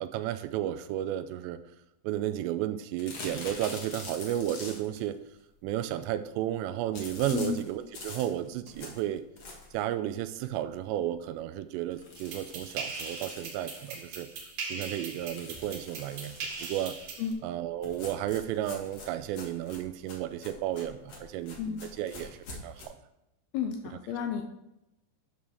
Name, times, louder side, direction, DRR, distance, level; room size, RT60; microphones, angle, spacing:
voice 1, 0.0-1.6 2.0-5.2 5.6-9.2 9.7-14.3 14.6-17.0 17.4-22.9, right 12 dB, 85° right, 12 dB, 2.7 m, -33 dB
sound 1, 3.0-5.0 6.9-9.8 10.3-10.4 10.7-10.8 11.1-11.2 11.9-14.4 15.2-17.0 17.8-22.8, left 3 dB, 50° left, 1.8 m, -45 dB
sound 2, 12.2-17.3, right 4 dB, 65° right, 3.1 m, -40 dB
voice 2, 23.5-24.4, left 7 dB, 80° left, 5 dB, 2.3 m, -32 dB
12.0 x 6.4 x 3.4 m, 0.88 s
omnidirectional pair, 5.1 m